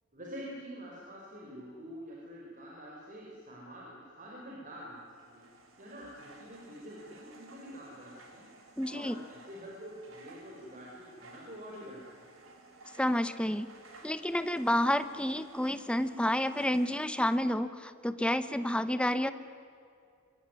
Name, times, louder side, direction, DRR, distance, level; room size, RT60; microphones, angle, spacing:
voice 1, 0.1-5.4 5.8-8.4 8.8-12.3, equal, 40° right, -3 dB, 5.6 m, -46 dB
sound 1, 5.0-17.4, right 2 dB, 85° right, 4.8 m, -55 dB
voice 2, 8.8-9.2 13.0-13.7 14.0-19.3, left 1 dB, 5° left, 12 dB, 1.1 m, -30 dB
25.5 x 23.5 x 9.8 m, 2.4 s
head